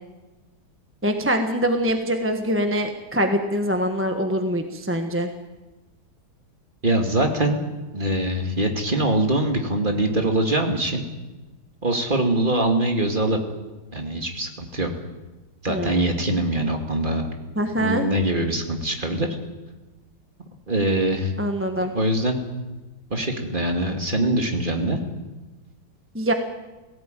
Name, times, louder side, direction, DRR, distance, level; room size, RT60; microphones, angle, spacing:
voice 1, 1.0-5.3 15.7-16.1 17.6-18.0 21.4-21.9 26.1-26.3, equal, 10° right, 5 dB, 1.0 m, -24 dB
voice 2, 6.8-7.6 7.9-11.1 11.8-13.4 13.9-14.9 15.6-17.2 17.7-19.3 20.7-21.3 21.9-22.4 23.1-25.0, right 1 dB, 25° right, 3 dB, 2.4 m, -23 dB
18.5 x 17.0 x 9.1 m, 1.1 s
omnidirectional pair, 2.2 m